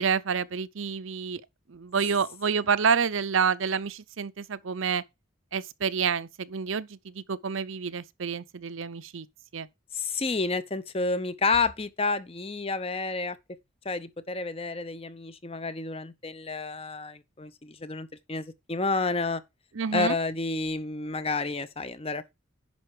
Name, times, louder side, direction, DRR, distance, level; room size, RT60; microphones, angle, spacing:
voice 1, 0.0-1.4 1.7-5.0 5.5-9.3 9.5-9.7 19.7-20.2, right 6 dB, 75° right, 0.6 m, -28 dB
voice 2, 9.9-13.4 13.8-19.4 19.9-22.3, left 3 dB, 30° left, 0.7 m, -30 dB
10.5 x 5.5 x 4.9 m
head